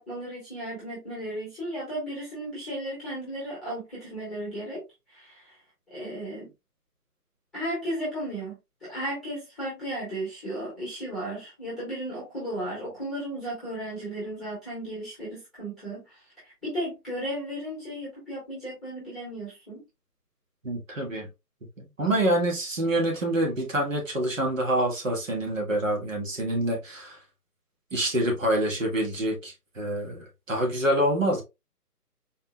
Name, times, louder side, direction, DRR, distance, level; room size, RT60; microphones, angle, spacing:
voice 1, 0.0-4.8 5.1-5.5 5.9-6.5 7.5-8.5 8.8-19.8, right 1 dB, ahead, 1.4 m, -35 dB
voice 2, 20.6-21.3 21.8-27.2 27.9-31.4, right 1 dB, 55° right, 1.5 m, -26 dB
4.3 x 3.6 x 2.2 m
figure-of-eight pair, 145°, 47 cm